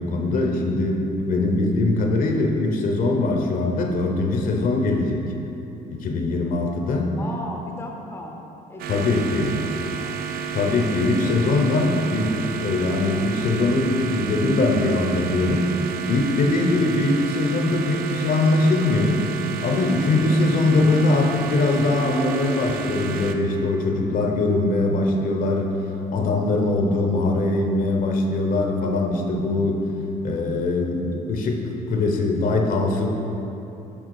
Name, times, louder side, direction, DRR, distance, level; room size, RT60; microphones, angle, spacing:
voice 1, 0.0-5.2 5.9-7.2 8.9-9.5 10.5-15.8 16.1-19.3 19.6-25.7 26.1-29.8 30.2-33.1, left 2 dB, 55° left, 2 dB, 0.8 m, -22 dB
voice 2, 7.2-8.4 8.7-8.9 9.2-10.3, left 1 dB, 15° left, 1 dB, 0.6 m, -36 dB
sound 1, 8.8-23.3, right 7 dB, 65° right, 0.5 m, -31 dB
7.8 x 3.5 x 4.7 m, 2.9 s
cardioid pair, 110°, 17 cm